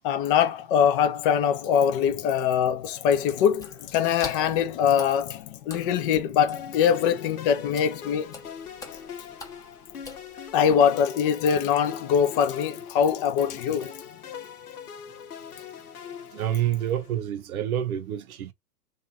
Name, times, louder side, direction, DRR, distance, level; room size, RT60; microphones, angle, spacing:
voice 1, 0.0-8.3 10.5-13.9, left 8 dB, 40° left, 0.6 m, -23 dB
Water / Splash splatter, 3.6-10.7, left 4 dB, 10° left, 0.8 m, -45 dB
sound 1, 6.5-17.2, left 7 dB, 90° left, 0.9 m, -42 dB
voice 2, 16.3-18.5, right 11 dB, 70° right, 0.8 m, -28 dB
3.2 x 2.5 x 3.5 m
hypercardioid pair, 120°, 44 cm